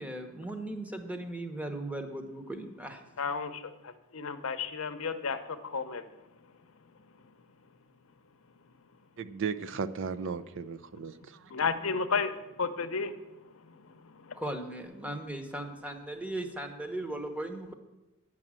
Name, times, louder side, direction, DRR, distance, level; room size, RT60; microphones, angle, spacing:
voice 1, 0.0-3.0 14.3-17.7, right 1 dB, 5° right, 6 dB, 0.9 m, -37 dB
voice 2, 3.2-3.5 4.1-5.4 5.7-6.0 11.5-12.3 12.6-13.1, left 5 dB, 70° left, 9 dB, 0.7 m, -31 dB
voice 3, 9.2-11.5, right 5 dB, 60° right, 12 dB, 0.5 m, -36 dB
9.0 x 6.1 x 7.4 m, 1.0 s
head